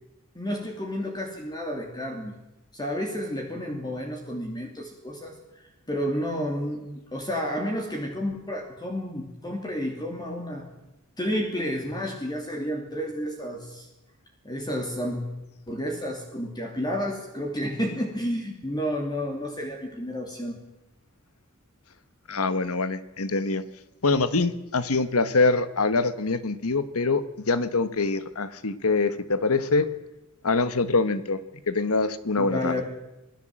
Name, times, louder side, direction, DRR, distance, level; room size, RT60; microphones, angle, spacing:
voice 1, 0.3-2.3 2.7-5.3 5.9-6.9 7.1-10.7 11.2-13.9 14.4-15.2 15.7-20.6 32.4-32.8, equal, 20° left, 1 dB, 2.9 m, -31 dB
voice 2, 22.3-23.6 24.0-29.9 30.4-31.4 31.7-32.8, left 3 dB, 80° left, 13 dB, 1.3 m, -24 dB
25.5 x 16.5 x 7.7 m, 0.97 s
head